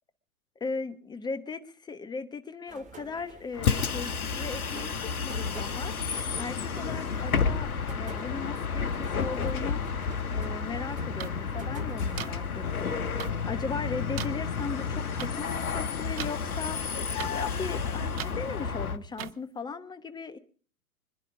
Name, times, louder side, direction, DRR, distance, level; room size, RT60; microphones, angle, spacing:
voice 1, 0.6-6.0 6.4-9.8 10.3-16.8 17.2-20.4, left 4 dB, 10° left, 10 dB, 1.1 m, -38 dB
sound 1, 2.7-12.2, right 5 dB, 15° right, 2.4 m, -49 dB
Bus, 3.5-19.0, left 6 dB, 70° left, 1.4 m, -31 dB
sound 2, 11.2-11.3 12.2-12.3 13.2-13.3 14.2-14.3 15.2-15.3 16.2-16.3 17.2-17.3 18.2-18.3 19.2-19.3, right 13 dB, 40° right, 0.9 m, -36 dB
25.5 x 10.5 x 4.9 m, 0.43 s
figure-of-eight pair, 115°, 44 cm